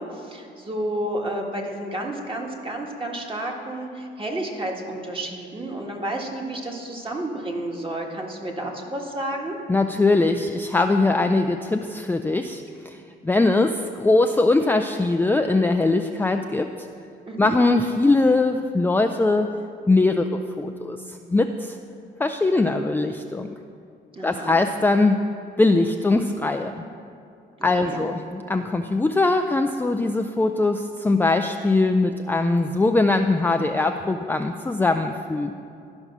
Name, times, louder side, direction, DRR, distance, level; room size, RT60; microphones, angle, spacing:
voice 1, 0.0-9.6 17.3-17.6 24.1-24.5 27.6-28.0, right 1 dB, 25° right, 0 dB, 1.7 m, -31 dB
voice 2, 9.7-13.0 13.2-16.9 17.4-19.5 19.9-21.8 22.2-23.5 24.2-25.2 25.6-26.7 27.6-35.5, left 2 dB, 10° left, 5 dB, 0.3 m, -21 dB
12.5 x 5.3 x 6.0 m, 2.5 s
cardioid pair, 90°, 20 cm